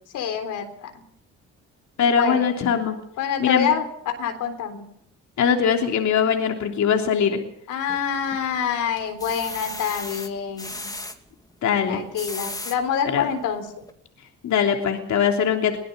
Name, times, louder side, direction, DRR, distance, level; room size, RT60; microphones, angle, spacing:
voice 1, 0.1-0.9 2.0-2.5 3.2-3.8 4.2-4.8 7.7-10.9 11.9-13.7, left 8 dB, 85° left, 6 dB, 3.8 m, -26 dB
voice 2, 2.0-3.0 3.4-3.7 5.4-7.4 11.6-12.0 13.0-13.3 14.4-15.8, left 7 dB, 65° left, 3 dB, 3.3 m, -21 dB
sound 1, 7.9-8.5 9.0-11.2 11.9-12.8 13.4-13.5 13.8-13.9, left 2 dB, 10° left, 2.6 m, -35 dB
23.5 x 17.5 x 6.7 m, 0.67 s
cardioid pair, 90°, 30 cm